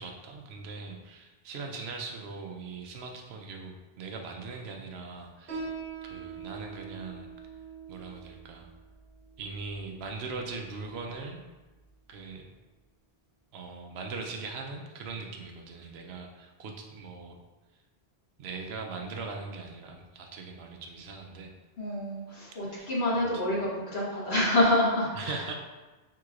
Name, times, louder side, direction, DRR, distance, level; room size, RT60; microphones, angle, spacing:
voice 1, 0.0-5.7 6.0-7.3 7.9-8.7 9.4-11.4 12.1-12.5 13.5-17.4 18.4-21.5 22.6-23.4 25.1-25.5, right 4 dB, 85° right, 3 dB, 0.9 m, -40 dB
Piano, 5.5-12.5, right 5 dB, 60° right, 1.2 m, -44 dB
voice 2, 21.8-23.6 23.9-25.5, left 1 dB, 80° left, -6 dB, 1.5 m, -27 dB
4.6 x 3.8 x 2.4 m, 1.2 s
omnidirectional pair, 1.1 m